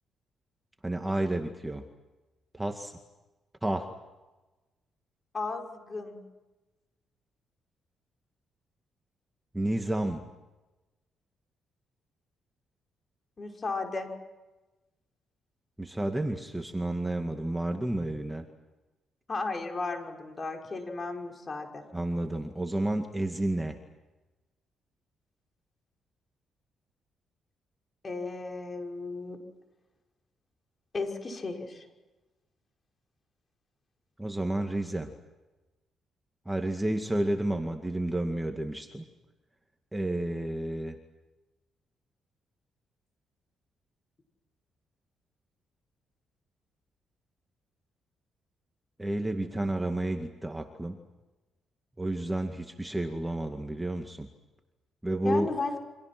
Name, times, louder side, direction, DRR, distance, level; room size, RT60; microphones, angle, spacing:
voice 1, 0.8-1.9 2.5-2.9 3.6-3.9 9.5-10.3 15.8-18.5 21.9-23.8 34.2-35.1 36.5-39.0 39.9-41.0 49.0-51.0 52.0-54.3 55.0-55.6, right 1 dB, 10° right, 5 dB, 2.2 m, -31 dB
voice 2, 5.3-6.2 13.4-14.1 19.3-21.8 28.0-29.4 30.9-31.9 55.2-55.8, left 3 dB, 30° left, 3 dB, 5.9 m, -34 dB
29.5 x 26.0 x 6.2 m, 1.1 s
cardioid pair, 90°, 0 cm